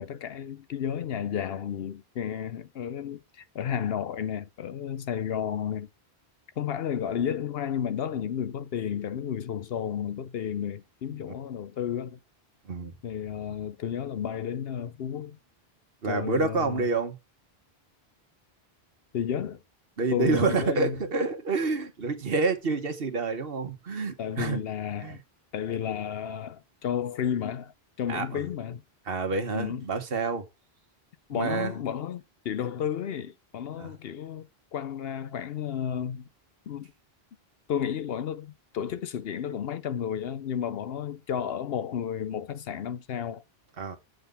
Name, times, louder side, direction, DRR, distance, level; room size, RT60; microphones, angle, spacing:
voice 1, 0.0-5.9 6.6-12.2 13.0-15.4 16.1-16.9 19.1-19.6 20.1-21.0 24.2-25.2 25.5-27.7 28.0-28.8 29.5-29.8 31.3-36.3 36.7-36.9 37.7-43.4, left 9 dB, 75° left, 0.9 m, -32 dB
voice 2, 16.0-17.2 20.0-24.6 25.0-25.2 28.1-28.4 29.0-30.5 31.3-31.8 33.8-33.9 43.8-44.0, right 4 dB, 65° right, 1.5 m, -28 dB
8.0 x 3.8 x 6.7 m
omnidirectional pair, 1.0 m